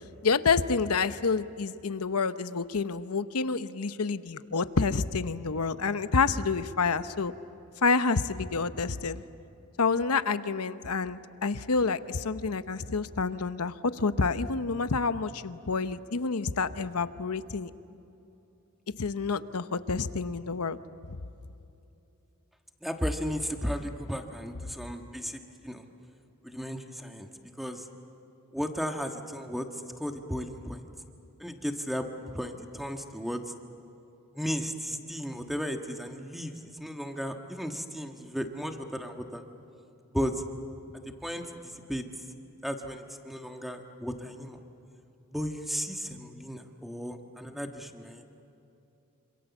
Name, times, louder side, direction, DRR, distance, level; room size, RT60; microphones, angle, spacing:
voice 1, 0.2-7.3 7.8-9.2 9.8-17.7 19.0-20.8 21.1-21.2, left 4 dB, 85° left, 12 dB, 0.9 m, -28 dB
voice 2, 22.8-25.9 26.4-27.3 27.6-27.9 28.5-29.7 30.0-30.8 31.4-32.1 32.3-33.4 34.3-39.4 40.1-40.4 41.2-42.0 42.6-44.6 45.3-48.4, equal, ahead, 4 dB, 1.4 m, -35 dB
27.0 x 26.5 x 7.2 m, 2.8 s
head